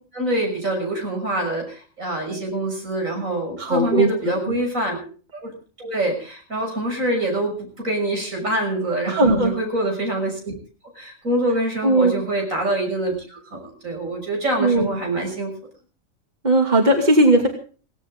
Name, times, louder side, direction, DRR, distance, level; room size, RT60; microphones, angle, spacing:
voice 1, 0.1-5.0 5.3-5.5 5.8-10.5 11.0-15.5, right 1 dB, 75° right, 2 dB, 6.8 m, -25 dB
voice 2, 3.6-4.6 9.1-9.5 11.8-12.1 14.6-14.9 16.4-17.5, right 1 dB, 30° right, 3 dB, 2.7 m, -18 dB
17.5 x 17.0 x 3.8 m, 0.40 s
omnidirectional pair, 1.4 m